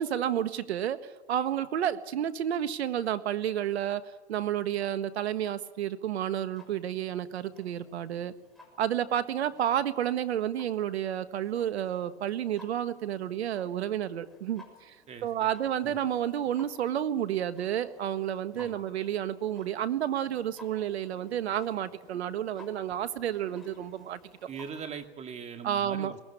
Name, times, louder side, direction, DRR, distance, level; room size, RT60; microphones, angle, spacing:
voice 1, 0.0-8.3 8.8-14.9 15.2-24.2 25.6-26.1, right 10 dB, 80° right, 12 dB, 1.6 m, -31 dB
Clock, 6.5-25.1, left 2 dB, ahead, 6.5 m, -57 dB
voice 2, 15.1-15.5 15.8-16.0 18.5-18.8 24.5-26.2, right 6 dB, 20° right, 7 dB, 2.1 m, -41 dB
22.0 x 19.0 x 10.0 m, 1.2 s
hypercardioid pair, 130°, 32 cm